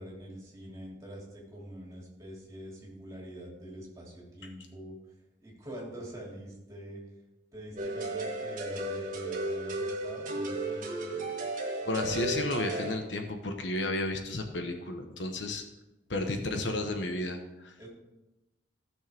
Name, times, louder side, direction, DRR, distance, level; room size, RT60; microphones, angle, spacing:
voice 1, 0.0-5.0 5.4-7.0 7.5-11.2 17.8-17.9, equal, 20° right, -3 dB, 2.9 m, -44 dB
sound 1, 7.8-13.0, right 2 dB, 45° right, 1.5 m, -34 dB
voice 2, 11.8-15.6 16.1-17.7, left 2 dB, 75° left, 5 dB, 1.1 m, -32 dB
15.5 x 6.4 x 3.5 m, 1.0 s
head